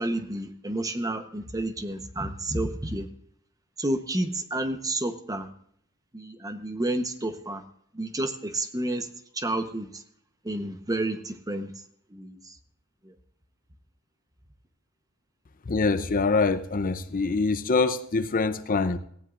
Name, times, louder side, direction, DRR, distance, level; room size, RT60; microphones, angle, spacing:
voice 1, 0.0-3.1 3.8-5.5 6.1-7.6 7.9-9.1 9.4-10.0 10.4-11.7 12.1-12.4 13.0-13.1, right 1 dB, 15° right, 8 dB, 1.0 m, -30 dB
voice 2, 15.7-19.0, left 4 dB, 40° left, 12 dB, 0.6 m, -24 dB
18.0 x 15.5 x 2.5 m, 0.67 s
head